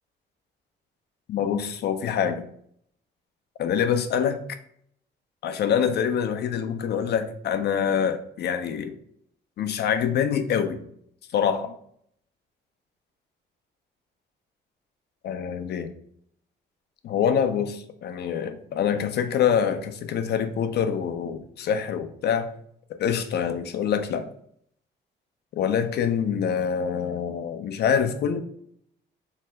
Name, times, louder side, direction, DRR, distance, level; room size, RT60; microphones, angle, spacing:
voice 1, 1.3-2.5 3.6-4.4 5.4-8.9 9.6-10.8 11.3-11.7 15.2-15.9 17.0-22.5 22.9-24.3 25.5-28.4, left 8 dB, 55° left, 9 dB, 0.4 m, -25 dB
2.7 x 2.1 x 3.2 m, 0.67 s
cardioid pair, 90°, 20 cm